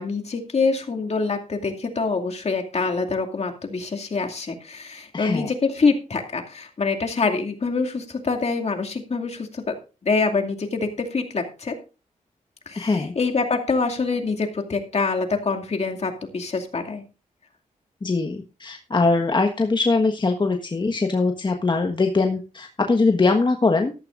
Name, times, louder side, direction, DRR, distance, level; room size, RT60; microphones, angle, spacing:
voice 1, 0.0-9.7 10.0-11.7 12.7-17.0, left 4 dB, 50° left, 3 dB, 2.4 m, -25 dB
voice 2, 5.1-5.5 12.8-13.1 18.0-23.9, left 3 dB, 35° left, 4 dB, 1.4 m, -22 dB
13.5 x 13.0 x 2.6 m, 0.32 s
cardioid pair, 85°, 14 cm